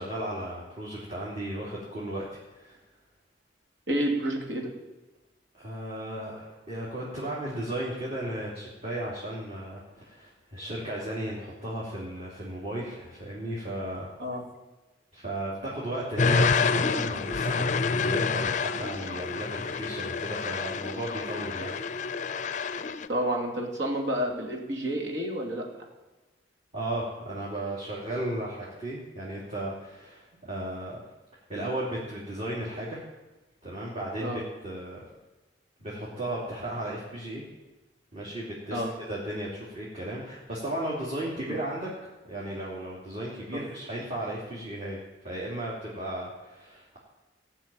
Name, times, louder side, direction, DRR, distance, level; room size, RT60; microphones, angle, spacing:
voice 1, 0.0-2.8 5.5-14.1 15.1-21.8 26.7-31.0 31.5-33.0 33.6-35.0 35.8-37.4 38.1-38.8 39.1-41.9 42.3-45.0 45.2-47.0, right 1 dB, 35° right, -6 dB, 2.9 m, -35 dB
voice 2, 3.9-4.7 14.2-14.4 23.1-25.7 34.2-34.4 38.7-38.9 41.5-41.6 43.5-43.6, right 1 dB, 75° right, 1 dB, 2.6 m, -29 dB
sound 1, 16.2-23.1, left 5 dB, 40° left, 0.5 m, -28 dB
17.0 x 6.3 x 8.9 m, 1.1 s
head